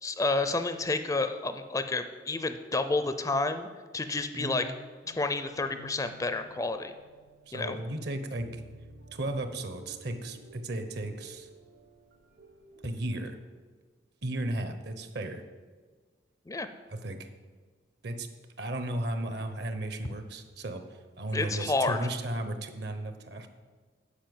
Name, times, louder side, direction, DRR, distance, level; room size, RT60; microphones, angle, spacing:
voice 1, 0.0-3.7 3.9-4.6 5.1-6.9 7.5-7.8 16.5-16.7 21.3-22.0, left 3 dB, 15° left, 9 dB, 0.4 m, -30 dB
voice 2, 4.3-4.6 7.5-8.6 9.1-11.5 12.8-13.4 14.2-15.4 16.9-17.3 18.0-18.3 18.6-20.8 21.2-23.5, right 1 dB, 60° right, 8 dB, 0.9 m, -35 dB
sound 1, 5.0-13.2, right 1 dB, 80° right, 2.3 m, -54 dB
8.6 x 5.3 x 7.8 m, 1.4 s
head